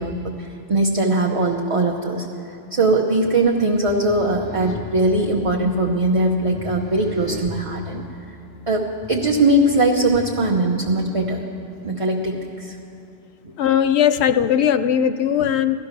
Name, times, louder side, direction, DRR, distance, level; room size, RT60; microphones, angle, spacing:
voice 1, 0.0-2.3 2.7-8.0 8.7-11.4 11.8-12.8, right 2 dB, 30° right, 0 dB, 0.9 m, -20 dB
sound 1, 3.8-10.7, left 2 dB, 50° right, 1.5 m, -38 dB
voice 2, 13.6-15.8, left 9 dB, 70° left, 12 dB, 0.8 m, -18 dB
16.5 x 13.0 x 6.0 m, 2.7 s
omnidirectional pair, 1.2 m